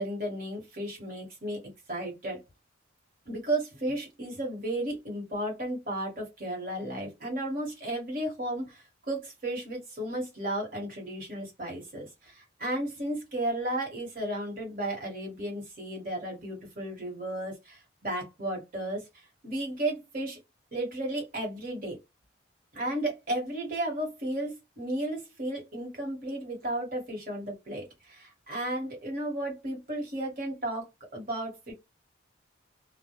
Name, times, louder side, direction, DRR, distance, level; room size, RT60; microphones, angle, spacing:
voice 1, 0.0-1.6 1.9-2.4 3.3-19.0 19.4-20.4 20.7-22.0 22.7-31.7, right 1 dB, 45° right, 1.1 m, -34 dB
2.1 x 2.1 x 2.9 m
head